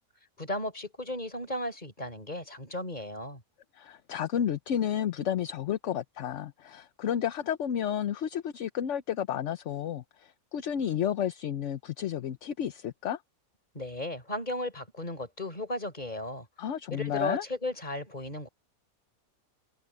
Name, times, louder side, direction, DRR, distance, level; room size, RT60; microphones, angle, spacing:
voice 1, 0.4-3.4 13.7-16.5 16.9-18.5, left 1 dB, 30° left, 4.4 m, -35 dB
voice 2, 3.7-13.2 16.6-17.4, left 9 dB, 60° left, 1.0 m, -31 dB
omnidirectional pair, 1.6 m